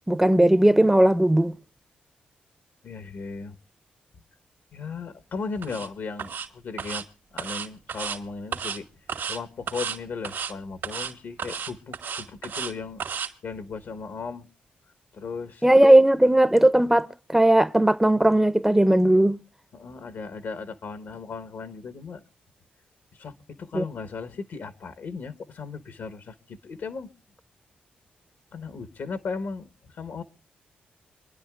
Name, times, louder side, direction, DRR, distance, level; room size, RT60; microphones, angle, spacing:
voice 1, 0.1-1.5 15.6-19.4 23.7-23.8, right 1 dB, 10° right, 0.6 m, -18 dB
voice 2, 2.8-3.6 4.7-7.1 7.3-8.9 9.3-14.5 15.1-15.7 19.7-22.2 23.1-27.1 28.5-30.2, left 4 dB, 70° left, 1.2 m, -36 dB
sound 1, 5.6-5.9 6.2-6.5 6.8-7.0 7.4-8.2 8.5-8.8 9.1-9.4 9.7-10.0 10.2-10.5 10.8-11.1 11.4-12.7 13.0-13.3, right 7 dB, 80° right, 1.9 m, -32 dB
26.5 x 10.5 x 2.4 m
supercardioid pair, 45°, 4 cm